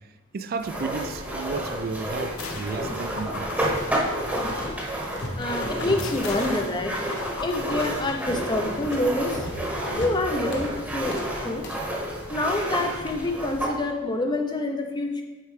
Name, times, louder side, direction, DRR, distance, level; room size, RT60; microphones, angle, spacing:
voice 1, 0.3-3.7, right 4 dB, 45° right, 0.3 m, -33 dB
sound 1, 0.6-13.8, right 1 dB, 5° right, 1.0 m, -30 dB
sound 2, 2.4-2.9 3.2-4.9 6.0-8.6, left 4 dB, 80° left, 0.6 m, -39 dB
sound 3, 3.8-4.8 5.0-7.3 7.5-11.9, left 1 dB, 55° left, 1.0 m, -37 dB
voice 2, 5.3-6.9 7.4-9.5 10.0-11.7 12.3-15.2, left 2 dB, 20° left, 0.5 m, -27 dB
8.5 x 4.3 x 3.2 m
head